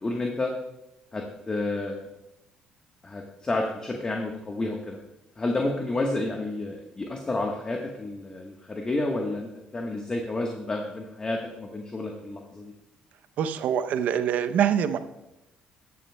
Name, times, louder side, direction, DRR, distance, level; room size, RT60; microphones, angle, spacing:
voice 1, 0.0-0.5 1.1-2.0 3.0-5.0 5.4-12.7, left 2 dB, 25° left, 2 dB, 1.2 m, -30 dB
voice 2, 13.4-15.0, right 9 dB, 65° right, 11 dB, 0.6 m, -24 dB
13.5 x 9.6 x 2.2 m, 0.92 s
supercardioid pair, 70°, 3 cm